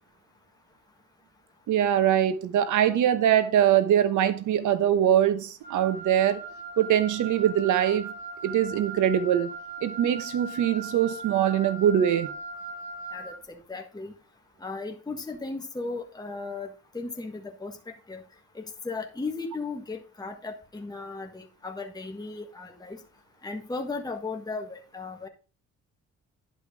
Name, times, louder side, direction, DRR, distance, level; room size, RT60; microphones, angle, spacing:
voice 1, 1.7-6.5 6.8-8.1 8.4-9.5 9.8-12.3, right 10 dB, 75° right, 1.1 m, -23 dB
Wind instrument woodwind instrument, 5.6-13.4, right 3 dB, 30° right, 3.4 m, -39 dB
voice 2, 13.1-14.1 14.6-18.2 18.5-23.0 23.4-25.3, left 3 dB, 15° left, 1.5 m, -36 dB
10.5 x 5.0 x 5.1 m
cardioid pair, 90°, 30 cm